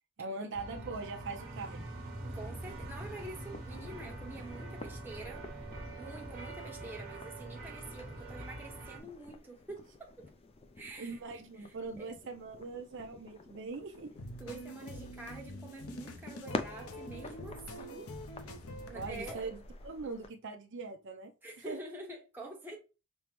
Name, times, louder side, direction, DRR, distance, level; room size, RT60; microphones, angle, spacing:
voice 1, 0.2-1.9 11.0-14.1 18.9-21.3 21.7-21.8, right 3 dB, 55° right, 0.5 m, -41 dB
sound 1, 0.5-9.0, right 2 dB, 40° right, 1.3 m, -44 dB
voice 2, 2.2-5.4 6.0-10.3 10.8-11.2 11.6-12.1 14.4-18.4 18.9-19.5 21.4-22.8, right 2 dB, 10° right, 0.9 m, -47 dB
sound 2, 2.7-20.3, left 3 dB, 25° left, 0.3 m, -48 dB
sound 3, 14.2-19.3, left 1 dB, 80° left, 0.7 m, -45 dB
5.4 x 2.1 x 3.0 m
head